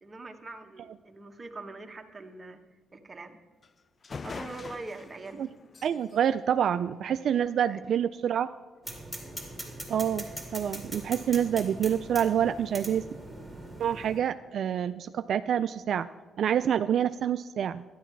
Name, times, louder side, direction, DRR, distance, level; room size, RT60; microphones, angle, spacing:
voice 1, 0.0-3.4 4.2-5.5 7.6-8.0, right 3 dB, 25° right, 4 dB, 1.2 m, -43 dB
sound 1, 3.6-3.7 4.0-7.5, left 4 dB, 40° left, 0.3 m, -44 dB
voice 2, 5.8-8.5 9.9-10.2 10.5-13.0 13.8-16.1 16.4-17.8, right 9 dB, 65° right, 11 dB, 0.3 m, -27 dB
sound 2, 8.8-14.2, right 1 dB, 10° left, 2.4 m, -41 dB
12.5 x 11.0 x 4.6 m, 1.4 s
cardioid pair, 90°, 0 cm